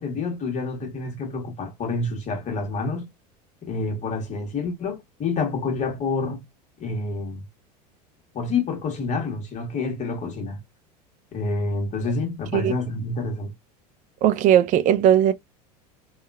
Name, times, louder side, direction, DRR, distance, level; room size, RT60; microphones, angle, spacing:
voice 1, 0.0-3.1 3.6-6.4 6.8-7.4 8.3-10.6 11.3-13.5, left 3 dB, 35° left, 1.2 m, -28 dB
voice 2, 14.2-15.3, right 10 dB, 40° right, 0.4 m, -18 dB
2.8 x 2.3 x 2.3 m
hypercardioid pair, 85°, 21 cm